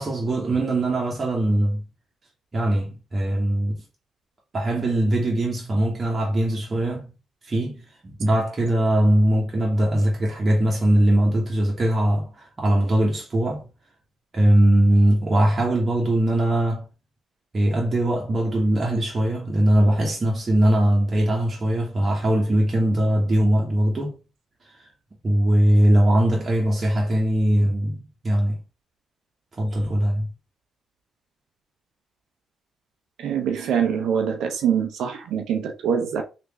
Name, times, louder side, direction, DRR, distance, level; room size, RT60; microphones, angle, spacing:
voice 1, 0.0-1.8 2.5-3.8 4.5-7.1 7.4-7.8 8.2-13.6 14.3-16.9 17.5-24.2 24.7-24.9 25.2-28.6 29.5-30.3, right 1 dB, 40° right, 1.0 m, -21 dB
voice 2, 33.2-36.2, right 8 dB, 80° right, 0.5 m, -24 dB
3.3 x 2.5 x 3.0 m
supercardioid pair, 55°, 0 cm